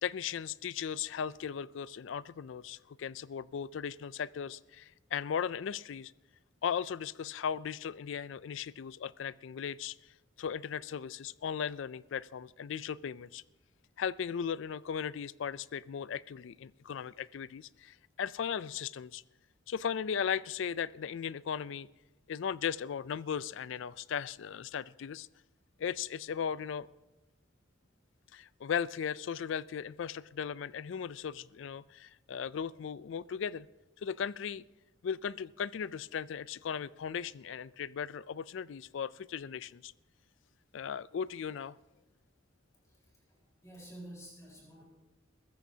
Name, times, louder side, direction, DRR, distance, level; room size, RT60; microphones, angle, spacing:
voice 1, 0.0-6.1 6.6-10.0 10.4-13.4 14.0-19.2 19.7-21.9 22.3-25.3 25.8-26.9 28.3-33.7 34.0-34.6 35.0-39.9 40.7-41.8, left 7 dB, 70° left, 19 dB, 0.4 m, -37 dB
voice 2, 42.7-44.8, right 1 dB, 15° left, -3 dB, 4.4 m, -51 dB
22.0 x 15.0 x 2.8 m, 1.1 s
head